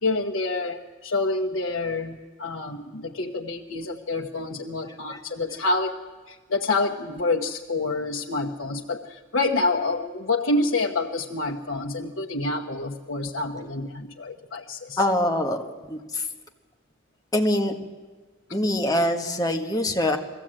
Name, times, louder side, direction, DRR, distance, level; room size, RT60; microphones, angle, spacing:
voice 1, 0.0-5.9 6.3-15.0, left 3 dB, 85° left, -1 dB, 1.1 m, -27 dB
voice 2, 15.0-16.3 17.3-17.8 18.5-20.2, left 1 dB, 20° left, 3 dB, 1.5 m, -24 dB
21.5 x 15.0 x 8.9 m, 1.3 s
head